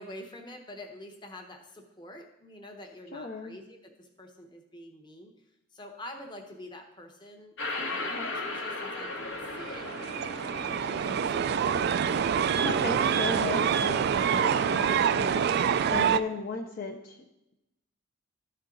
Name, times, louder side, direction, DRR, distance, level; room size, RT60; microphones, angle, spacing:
voice 1, 0.0-5.3 5.7-12.6 15.7-16.0, left 1 dB, 20° left, 4 dB, 0.9 m, -47 dB
voice 2, 3.1-3.6 8.2-8.3 12.1-17.2, left 3 dB, 45° left, 1 dB, 0.6 m, -36 dB
sound 1, 7.6-13.1, left 2 dB, 60° left, 1.1 m, -37 dB
sound 2, 9.4-16.2, right 7 dB, 55° right, 0.3 m, -26 dB
13.0 x 4.5 x 3.8 m, 0.90 s
head